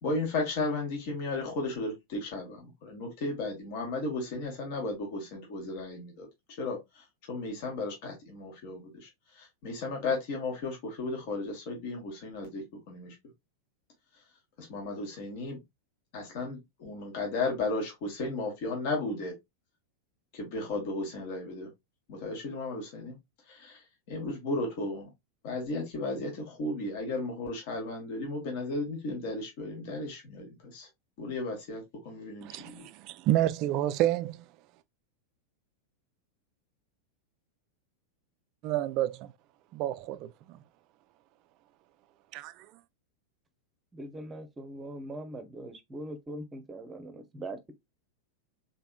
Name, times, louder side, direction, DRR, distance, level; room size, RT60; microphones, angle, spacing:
voice 1, 0.0-6.3 6.6-13.1 14.1-14.2 14.6-15.6 16.1-19.3 20.3-21.7 22.1-23.2 23.4-25.1 25.4-30.9 31.2-32.9, left 2 dB, 50° left, 1.5 m, -35 dB
voice 2, 32.4-34.4 38.6-39.3 39.7-40.3 42.3-42.5, right 13 dB, 40° right, 0.3 m, -29 dB
voice 3, 43.9-47.7, right 1 dB, 15° right, 0.8 m, -41 dB
4.0 x 3.4 x 2.3 m
figure-of-eight pair, 90°, 0 cm